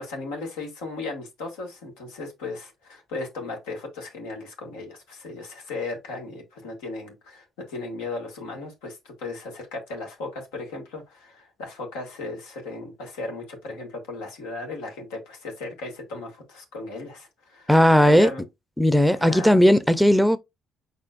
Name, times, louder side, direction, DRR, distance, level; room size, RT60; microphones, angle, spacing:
voice 1, 0.0-17.7 18.0-18.4 19.2-19.6, left 3 dB, 90° left, 1.7 m, -36 dB
voice 2, 17.7-18.3 18.8-20.4, equal, ahead, 0.5 m, -17 dB
5.1 x 4.3 x 2.4 m
supercardioid pair, 70°, 0 cm